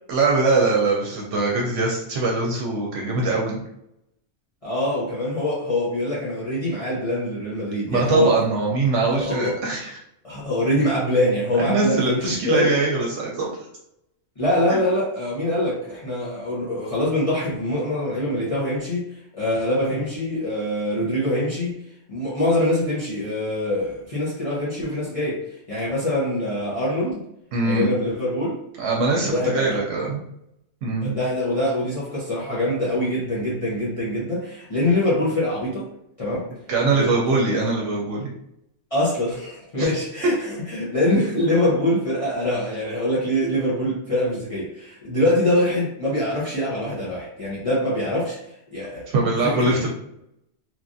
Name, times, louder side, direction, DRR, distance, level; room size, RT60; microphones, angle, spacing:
voice 1, 0.1-3.6 7.9-10.0 11.6-13.5 14.7-14.8 27.5-27.9 28.8-30.2 30.8-31.2 36.7-38.3 39.8-39.9 49.1-49.9, right 3 dB, 75° right, -2 dB, 0.9 m, -22 dB
voice 2, 4.6-8.4 9.1-9.5 10.2-12.7 14.4-21.8 22.1-27.2 27.6-28.6 29.2-29.8 31.0-35.9 36.2-36.5 36.9-37.4 38.9-48.4 48.7-49.1 49.5-49.9, left 1 dB, 35° left, -8 dB, 0.7 m, -24 dB
3.1 x 2.4 x 2.5 m, 0.78 s
omnidirectional pair, 1.3 m